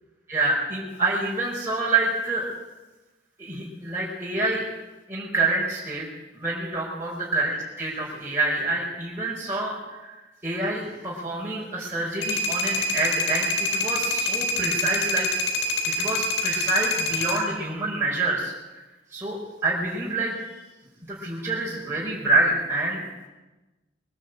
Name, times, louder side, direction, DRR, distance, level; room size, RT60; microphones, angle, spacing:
voice 1, 0.3-2.4 3.4-4.6 5.1-6.1 6.3-15.3 15.8-18.8 19.1-20.6 21.1-23.0, right 2 dB, 15° right, -6 dB, 4.9 m, -27 dB
sound 1, 12.2-17.4, left 2 dB, 85° left, 3.9 m, -26 dB
22.0 x 17.5 x 8.0 m, 1.1 s
head